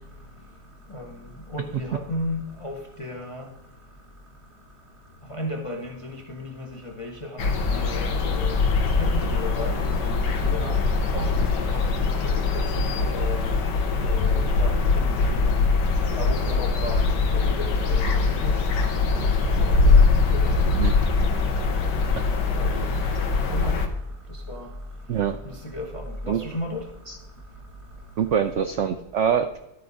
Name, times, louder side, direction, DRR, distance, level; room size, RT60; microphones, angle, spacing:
voice 1, 1.5-3.4 5.3-6.7 7.0-7.4 7.7-8.6 9.0-10.1 10.4-10.8 11.1-11.3 11.7-11.8 12.2-13.4 14.0-15.6 16.2-18.5 19.1-19.3 19.6-19.7 20.4-20.5 22.5-22.9 23.5-23.7 24.5-24.7 25.7-26.8, left 1 dB, 35° left, 1 dB, 0.5 m, -34 dB
sound 1, 7.4-23.9, left 4 dB, 80° left, 1.5 m, -22 dB
voice 2, 28.2-29.6, right 8 dB, 85° right, 8 dB, 0.6 m, -24 dB
12.5 x 4.8 x 3.9 m, 0.91 s
omnidirectional pair, 1.8 m